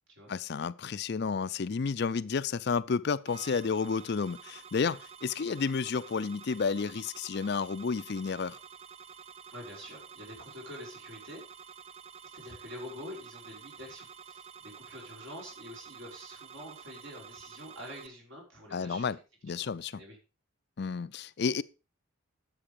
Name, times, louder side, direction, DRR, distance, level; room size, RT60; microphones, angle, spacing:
voice 1, 0.3-8.6 18.7-19.2 19.4-20.0 20.8-21.6, left 5 dB, 50° left, 0.4 m, -31 dB
sound 1, 3.3-18.1, right 7 dB, 30° right, 0.4 m, -50 dB
voice 2, 9.5-11.4 12.3-19.1 19.6-19.7 19.9-20.2, left 1 dB, 65° right, 5.5 m, -46 dB
10.0 x 7.6 x 5.2 m
head